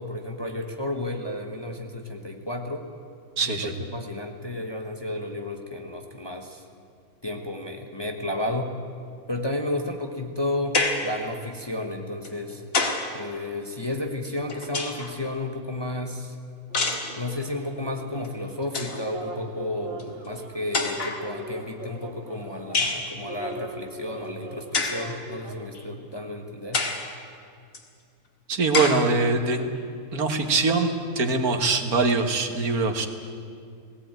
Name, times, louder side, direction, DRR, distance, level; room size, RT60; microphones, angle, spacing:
voice 1, 0.0-2.9 3.5-6.6 7.2-8.7 9.3-12.6 13.1-16.3 17.2-26.8, left 1 dB, 20° left, 2 dB, 1.3 m, -32 dB
voice 2, 3.4-3.7 28.5-29.7 30.1-33.1, right 3 dB, 75° right, 5 dB, 2.0 m, -23 dB
sound 1, 10.7-11.2 12.2-13.1 14.2-15.2 16.7-17.1 18.2-18.3 18.6-19.0 20.0-20.1 20.7-21.2 22.7-23.1 24.7-25.1 25.7-25.8 26.7-27.1 27.7-27.8 28.7-29.1, left 3 dB, 65° left, 2.2 m, -26 dB
sound 2, 16.7-25.7, right 1 dB, 40° right, 2.0 m, -41 dB
18.0 x 17.0 x 9.0 m, 2.3 s
omnidirectional pair, 1.6 m